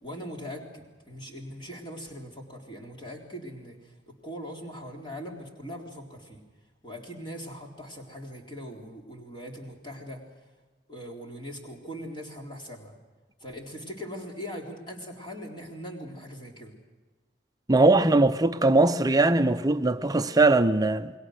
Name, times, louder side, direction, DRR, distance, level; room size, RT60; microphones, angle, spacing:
voice 1, 0.0-6.4 6.8-10.2 10.9-13.0 13.4-16.7, equal, 25° left, 3.8 m, -41 dB
voice 2, 17.7-21.1, right 2 dB, 20° right, 0.6 m, -21 dB
29.5 x 21.5 x 6.5 m
head